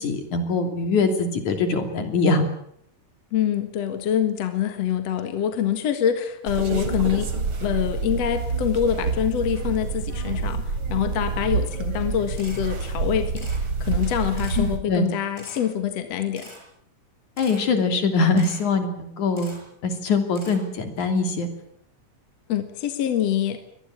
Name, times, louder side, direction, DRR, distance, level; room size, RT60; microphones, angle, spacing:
voice 1, 0.0-2.4 14.6-15.1 17.4-21.5, left 3 dB, 80° left, 7 dB, 4.5 m, -23 dB
voice 2, 3.3-7.3 7.6-10.6 10.9-13.5 13.8-16.5 22.5-23.6, left 9 dB, 60° left, 8 dB, 2.7 m, -25 dB
sound 1, 6.5-14.8, right 4 dB, 45° right, 3.4 m, -27 dB
Camera, 12.4-12.6 13.4-13.6 14.4-14.6 15.4-15.6 16.4-16.6 17.4-17.6 18.4-18.6 19.4-19.6 20.4-20.6, equal, 10° left, 6.3 m, -43 dB
24.5 x 19.5 x 8.7 m, 0.70 s
omnidirectional pair, 3.4 m